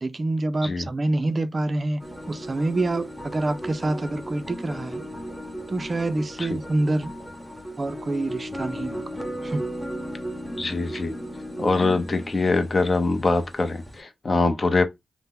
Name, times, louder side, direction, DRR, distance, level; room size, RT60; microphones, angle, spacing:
voice 1, 0.0-5.0 5.7-7.1 7.8-9.1 9.4-9.7, right 2 dB, 40° right, 0.4 m, -26 dB
sound 1, 2.0-14.0, equal, ahead, 0.9 m, -36 dB
voice 2, 10.6-11.1 11.6-14.8, left 3 dB, 45° left, 0.6 m, -23 dB
2.8 x 2.0 x 3.6 m
cardioid pair, 65°, 0 cm